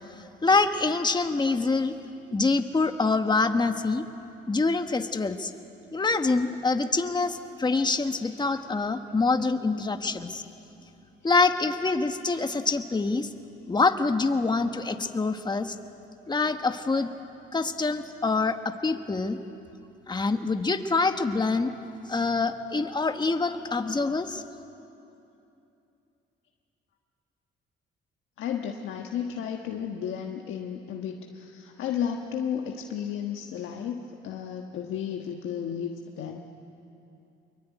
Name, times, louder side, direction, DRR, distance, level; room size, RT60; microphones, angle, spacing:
voice 1, 0.4-1.9 2.3-4.0 4.5-5.5 5.9-10.4 11.2-13.3 13.7-15.7 16.3-17.1 17.5-19.4 20.1-21.7 22.1-24.4, left 3 dB, 20° left, 7 dB, 1.4 m, -25 dB
voice 2, 28.4-36.4, left 8 dB, 85° left, 2 dB, 1.4 m, -33 dB
24.5 x 23.0 x 9.3 m, 2.8 s
cardioid pair, 90°, 20 cm